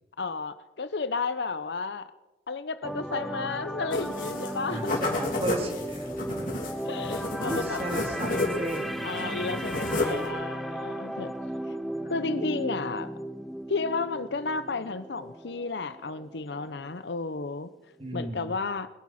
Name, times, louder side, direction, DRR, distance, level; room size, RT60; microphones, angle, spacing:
voice 1, 0.2-2.1 2.5-5.1 6.8-7.9 9.0-11.3 12.0-13.1 13.7-17.7 18.1-18.9, left 4 dB, 75° left, 14 dB, 0.7 m, -32 dB
sound 1, 2.8-17.0 17.3-17.5, equal, ahead, 0.5 m, -36 dB
sound 2, 3.9-4.5 4.8-8.8 9.1-10.3, left 2 dB, 50° left, 3.1 m, -31 dB
voice 2, 4.6-6.1 7.5-9.6 18.0-18.6, right 1 dB, 35° right, 3 dB, 2.1 m, -35 dB
24.0 x 11.0 x 4.3 m, 1.1 s
head